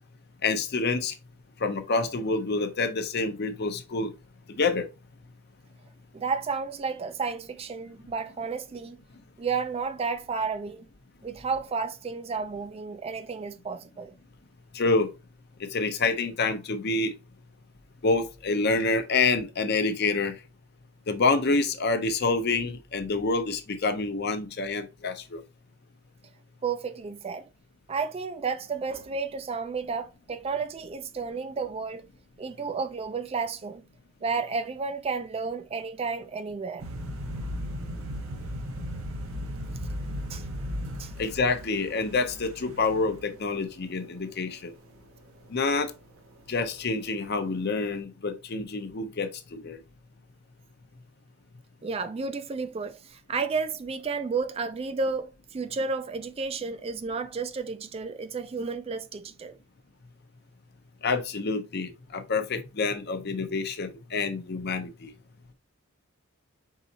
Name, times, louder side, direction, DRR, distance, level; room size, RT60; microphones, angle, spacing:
voice 1, 0.4-1.1 1.6-4.1 4.5-4.8 14.7-15.1 15.7-17.1 18.0-20.4 21.1-25.4 41.2-44.7 45.5-45.9 46.5-49.8 61.0-65.1, left 3 dB, 50° left, 0.7 m, -27 dB
voice 2, 6.1-9.0 9.4-10.9 11.2-14.1 26.6-27.5 27.9-32.0 32.4-33.8 34.2-36.9 40.3-40.4 41.0-41.1 51.8-59.6, right 4 dB, 30° right, 0.3 m, -32 dB
sound 1, 36.8-46.2 46.4-46.8 47.1-47.4 47.7-47.9, equal, 80° right, 0.8 m, -37 dB
4.7 x 3.9 x 2.8 m
head